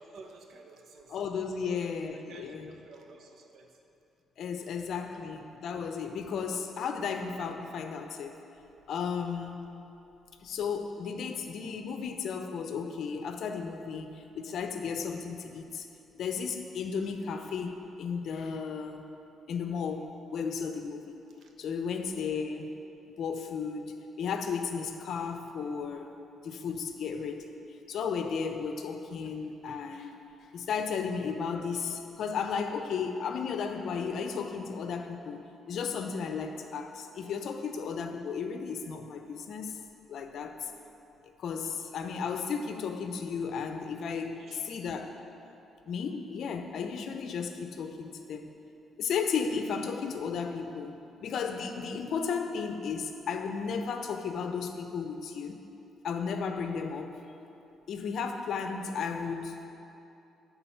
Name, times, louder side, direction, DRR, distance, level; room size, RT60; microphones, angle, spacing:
voice 1, 0.0-1.2 1.6-3.7 4.8-5.7 21.4-21.5 44.3-44.8, right 3 dB, 65° right, 3 dB, 0.7 m, -53 dB
voice 2, 1.1-2.8 4.4-8.4 8.9-9.8 10.4-15.9 16.1-19.0 19.5-21.1 21.6-22.7 23.2-26.1 26.4-27.5 27.9-30.1 30.5-39.8 40.1-40.7 41.4-45.2 45.9-48.5 49.0-50.9 51.2-55.6 56.0-57.2 57.9-59.7, left 6 dB, 65° left, 6 dB, 0.5 m, -34 dB
8.3 x 3.9 x 5.7 m, 2.8 s
cardioid pair, 90°, 0 cm